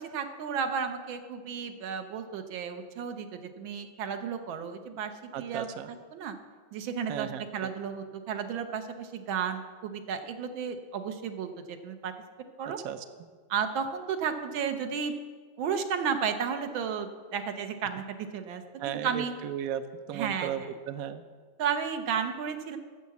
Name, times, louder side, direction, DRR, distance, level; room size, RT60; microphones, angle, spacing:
voice 1, 0.0-5.7 6.1-6.4 6.7-12.1 12.6-12.8 13.5-15.1 15.6-19.3 20.1-20.7 21.6-22.8, right 7 dB, 85° right, 7 dB, 1.6 m, -33 dB
voice 2, 5.3-5.9 7.1-7.7 12.8-13.0 18.8-21.2, right 9 dB, 70° right, 10 dB, 0.8 m, -35 dB
9.4 x 7.3 x 7.0 m, 1.5 s
omnidirectional pair, 2.1 m